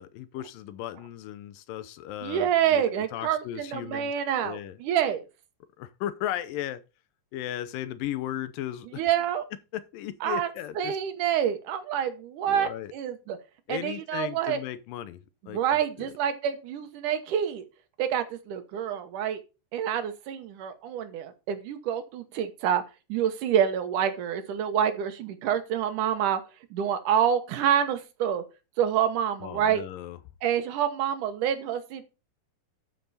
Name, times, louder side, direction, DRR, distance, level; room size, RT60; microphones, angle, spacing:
voice 1, 0.0-4.1 4.4-4.8 5.8-6.8 7.3-9.0 9.7-11.0 12.5-12.9 13.7-15.2 15.5-16.1 29.4-30.2, left 12 dB, 85° left, 2.4 m, -36 dB
voice 2, 2.2-5.2 9.0-9.4 10.2-10.5 10.8-13.4 13.7-14.6 15.5-17.7 18.0-19.4 19.7-22.8 23.1-26.4 26.7-28.4 28.8-29.8 30.4-32.0, right 9 dB, 70° right, 2.5 m, -27 dB
12.0 x 5.9 x 4.1 m
omnidirectional pair, 3.9 m